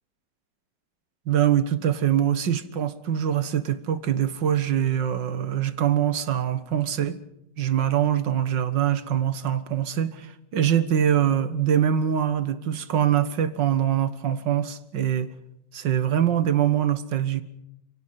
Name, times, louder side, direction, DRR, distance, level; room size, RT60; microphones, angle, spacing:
voice 1, 1.3-7.2 7.6-15.3 15.7-17.4, right 10 dB, 90° right, 13 dB, 2.1 m, -23 dB
29.5 x 17.5 x 7.6 m, 0.84 s
omnidirectional pair, 1.9 m